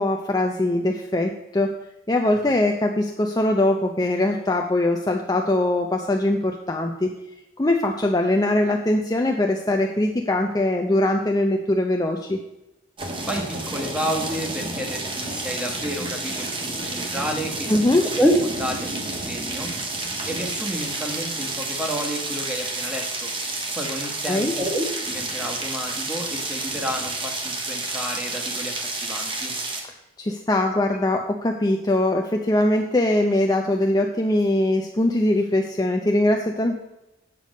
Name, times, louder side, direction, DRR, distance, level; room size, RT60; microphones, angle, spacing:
voice 1, 0.0-1.7 2.1-7.1 7.6-12.4 17.7-18.1 24.2-24.5 30.2-36.8, left 1 dB, 20° left, 2 dB, 0.5 m, -22 dB
sound 1, 13.0-29.8, right 2 dB, 25° right, 1.2 m, -30 dB
voice 2, 13.2-20.0 20.3-23.3 23.7-29.5, equal, 5° right, 2 dB, 1.3 m, -29 dB
8.3 x 6.9 x 5.2 m, 0.93 s
head